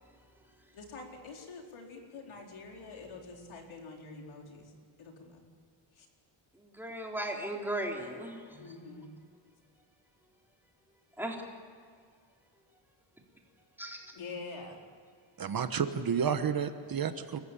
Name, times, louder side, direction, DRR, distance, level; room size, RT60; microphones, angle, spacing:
voice 1, 0.7-4.7 5.0-5.4 5.9-6.1 8.6-9.2 14.1-14.8, left 3 dB, 75° left, 1 dB, 4.5 m, -46 dB
voice 2, 6.5-8.7 11.2-11.4 13.8-14.0, right 1 dB, 5° right, -1 dB, 3.9 m, -37 dB
voice 3, 15.4-17.4, right 7 dB, 45° right, 9 dB, 1.2 m, -31 dB
29.0 x 15.0 x 8.5 m, 2.1 s
wide cardioid pair, 140°, 48 cm